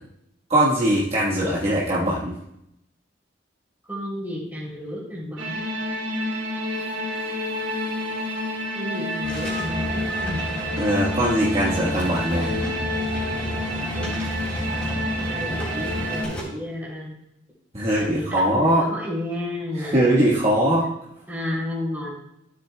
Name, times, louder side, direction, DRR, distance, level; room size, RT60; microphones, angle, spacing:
voice 1, 0.5-2.4 10.8-12.6 17.7-18.9 19.7-20.9, right 1 dB, 35° right, -7 dB, 1.4 m, -21 dB
voice 2, 3.9-5.6 8.7-10.3 13.9-14.5 15.3-17.1 18.0-18.2 18.5-19.9 21.3-22.1, left 1 dB, 10° right, -5 dB, 3.1 m, -32 dB
sound 1, 5.4-16.2, equal, 70° right, 3.3 m, -29 dB
sound 2, 9.2-16.4, left 1 dB, 10° left, 3.5 m, -31 dB
13.0 x 7.8 x 2.2 m, 0.82 s
head